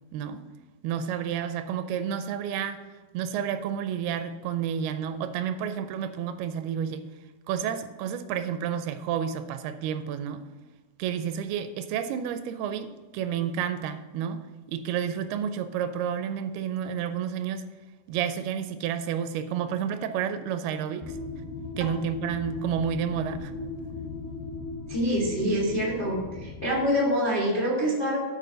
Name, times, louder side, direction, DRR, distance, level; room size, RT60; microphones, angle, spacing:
voice 1, 0.1-0.4 0.8-2.8 3.1-7.1 7.5-10.5 11.0-14.4 14.7-17.6 18.1-21.2 21.8-23.5, right 8 dB, 80° right, 10 dB, 2.4 m, -30 dB
sound 1, 21.0-26.9, left 3 dB, 80° left, 2.4 m, -37 dB
voice 2, 24.9-28.2, equal, 60° left, -4 dB, 0.5 m, -26 dB
8.4 x 4.4 x 6.6 m, 1.3 s
omnidirectional pair, 4.6 m